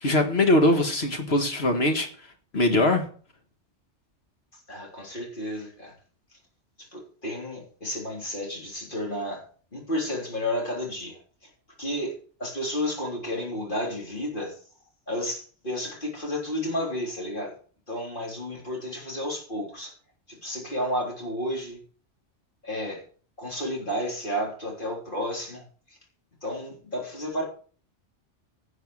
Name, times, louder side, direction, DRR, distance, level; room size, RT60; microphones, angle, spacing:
voice 1, 0.0-2.1 2.5-3.0, left 1 dB, 60° left, 1.9 m, -21 dB
voice 2, 4.5-5.9 6.3-6.4 6.8-9.4 9.7-11.5 11.8-14.6 15.1-17.5 17.9-19.9 20.3-21.8 22.6-23.0 23.4-26.0 26.4-27.4, left 1 dB, 45° left, 3.8 m, -32 dB
11.0 x 6.4 x 6.4 m
omnidirectional pair, 1.2 m